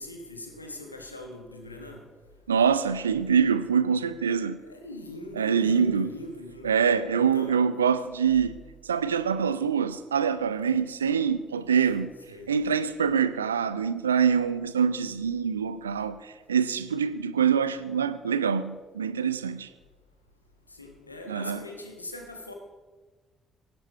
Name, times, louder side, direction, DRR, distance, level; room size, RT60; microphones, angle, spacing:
voice 1, 0.0-2.0 4.6-6.8 7.1-7.6 12.3-12.5 20.7-22.5, left 1 dB, 85° left, 1.3 m, -41 dB
voice 2, 2.5-4.6 5.4-6.1 6.6-8.6 8.9-12.1 12.5-19.7 21.3-21.6, right 7 dB, 80° right, 0.5 m, -25 dB
16.0 x 12.0 x 4.6 m
figure-of-eight pair, 45°, 0 cm